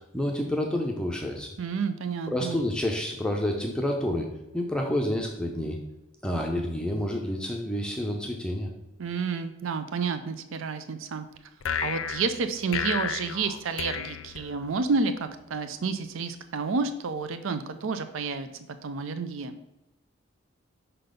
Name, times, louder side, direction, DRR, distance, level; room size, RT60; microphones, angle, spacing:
voice 1, 0.1-1.5 2.3-5.8 6.2-8.7, left 1 dB, 5° left, 1 dB, 0.5 m, -29 dB
voice 2, 1.6-2.6 9.0-11.3 11.8-18.5 18.8-19.6, right 4 dB, 75° right, 10 dB, 0.4 m, -30 dB
sound 1, 11.6-15.0, left 7 dB, 80° left, 0.4 m, -33 dB
5.5 x 3.9 x 5.0 m, 0.92 s
head